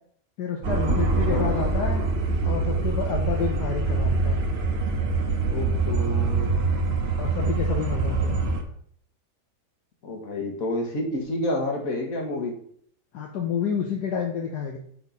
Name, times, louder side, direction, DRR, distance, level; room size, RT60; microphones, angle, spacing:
voice 1, 0.4-2.0 2.4-4.4 7.2-8.4 13.1-14.8, left 6 dB, 70° left, 0 dB, 1.5 m, -29 dB
sound 1, 0.6-8.6, right 3 dB, 45° right, 1.1 m, -24 dB
voice 2, 5.5-6.6 10.0-12.6, left 1 dB, 55° left, 1 dB, 2.0 m, -29 dB
7.3 x 4.3 x 5.4 m, 0.62 s
omnidirectional pair, 1.8 m